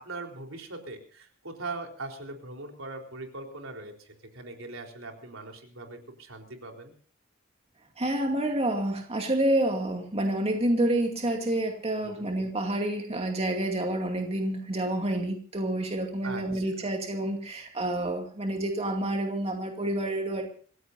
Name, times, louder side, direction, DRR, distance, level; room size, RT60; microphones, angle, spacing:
voice 1, 0.0-6.9 12.0-12.2 16.2-16.7, right 3 dB, 80° right, 2 dB, 4.0 m, -41 dB
voice 2, 8.0-20.5, right 1 dB, 30° right, 3 dB, 2.4 m, -28 dB
27.0 x 16.0 x 2.7 m, 0.43 s
head